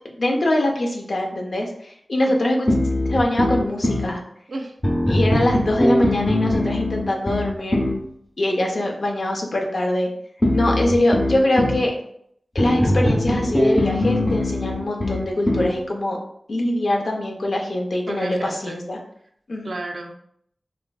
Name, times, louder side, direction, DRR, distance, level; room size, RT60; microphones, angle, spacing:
voice 1, 0.2-2.7 3.1-4.2 5.1-7.8 8.4-10.1 10.5-11.9 12.5-16.2 16.5-19.0 19.5-19.7, left 1 dB, 70° left, 0 dB, 0.6 m, -23 dB
sound 1, 2.7-4.1 4.8-8.0 10.4-11.8 12.6-15.8, left 1 dB, 30° left, 0.7 m, -21 dB
voice 2, 18.1-18.8 19.6-20.2, right 2 dB, 70° right, 4 dB, 0.4 m, -33 dB
3.1 x 2.5 x 2.2 m, 0.68 s
cardioid pair, 50°, 0 cm